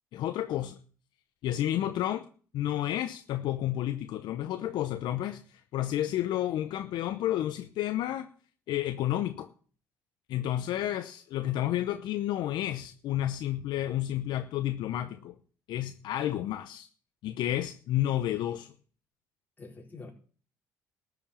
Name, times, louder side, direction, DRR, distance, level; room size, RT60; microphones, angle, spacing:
voice 1, 0.1-0.8 1.4-2.2 2.5-5.4 5.7-8.3 8.7-9.5 10.3-15.4 15.7-16.9 17.2-18.7, left 13 dB, 65° left, 0.8 m, -31 dB
voice 2, 1.8-2.1 10.7-10.9 19.6-20.1, left 3 dB, 25° left, 4.5 m, -47 dB
13.5 x 7.2 x 7.3 m
hypercardioid pair, 65°, 8 cm